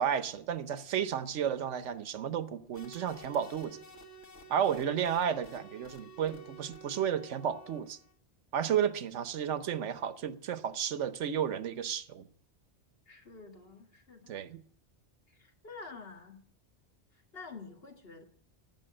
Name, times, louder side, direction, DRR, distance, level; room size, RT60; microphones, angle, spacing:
voice 1, 0.0-3.8 4.5-8.0 8.5-12.3 14.3-14.6, right 8 dB, 85° right, 1.1 m, -32 dB
sound 1, 2.7-8.1, right 2 dB, 90° left, 1.8 m, -52 dB
voice 2, 13.1-14.4 15.3-16.4 17.1-18.2, left 4 dB, 55° left, 1.9 m, -49 dB
14.5 x 6.0 x 8.7 m
omnidirectional pair, 1.2 m